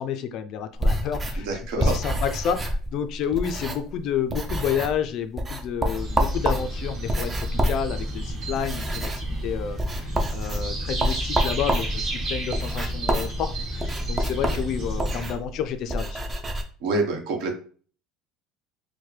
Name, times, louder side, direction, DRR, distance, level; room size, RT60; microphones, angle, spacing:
voice 1, 0.0-1.5 1.7-16.2, left 8 dB, 45° left, 11 dB, 0.3 m, -30 dB
sound 1, 0.7-4.0 4.3-5.1 5.4-16.6, right 1 dB, 15° right, 0.5 m, -28 dB
voice 2, 1.3-2.0 14.4-14.6 16.8-17.5, right 3 dB, 60° right, 3 dB, 1.0 m, -27 dB
sound 2, 5.9-15.3, right 1 dB, 35° right, 1.5 m, -31 dB
4.5 x 2.1 x 3.2 m, 0.42 s
cardioid pair, 165°, 0 cm